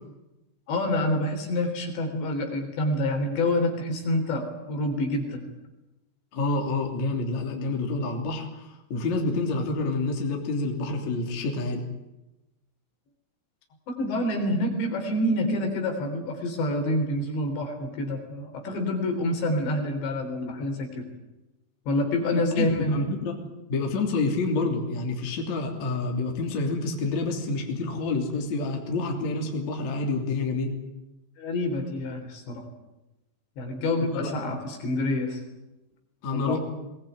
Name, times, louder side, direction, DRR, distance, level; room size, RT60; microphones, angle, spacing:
voice 1, 0.7-5.5 13.9-21.0 21.9-23.0 31.4-32.7 33.6-35.4 36.3-36.6, left 1 dB, 60° left, 4 dB, 5.8 m, -27 dB
voice 2, 6.3-11.9 22.3-23.4 23.7-30.8 34.1-34.5 36.2-36.6, left 3 dB, 40° left, 1 dB, 3.8 m, -28 dB
23.0 x 19.5 x 9.4 m, 0.99 s
omnidirectional pair, 5.8 m